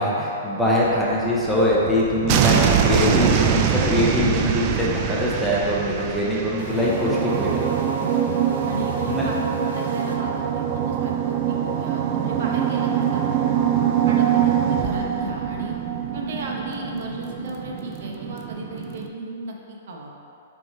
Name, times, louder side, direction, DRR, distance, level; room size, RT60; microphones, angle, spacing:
voice 1, 0.0-7.5 9.0-9.3, left 1 dB, ahead, -7 dB, 0.6 m, -22 dB
sound 1, 0.8-19.1, right 8 dB, 30° right, 0.3 m, -24 dB
sound 2, 6.6-10.6, left 3 dB, 65° left, 0.9 m, -37 dB
voice 2, 8.7-13.6 14.1-15.7 16.1-20.1, right 1 dB, 60° right, -1 dB, 0.9 m, -34 dB
6.2 x 3.7 x 4.1 m, 2.7 s
hypercardioid pair, 165°, 0 cm